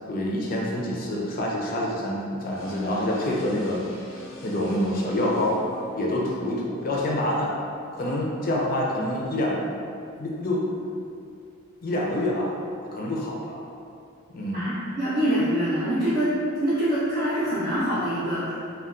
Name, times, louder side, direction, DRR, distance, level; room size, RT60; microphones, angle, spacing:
voice 1, 0.1-3.8 4.4-5.6 6.0-7.5 8.0-9.7 10.2-10.8 11.8-12.5 12.8-13.6 14.3-14.6, left 1 dB, 45° left, -3 dB, 0.4 m, -26 dB
sound 1, 2.5-6.5, left 2 dB, 90° left, 0.6 m, -44 dB
voice 2, 14.5-16.3 16.6-18.5, equal, 45° right, -11 dB, 0.5 m, -25 dB
2.2 x 2.2 x 3.6 m, 2.4 s
head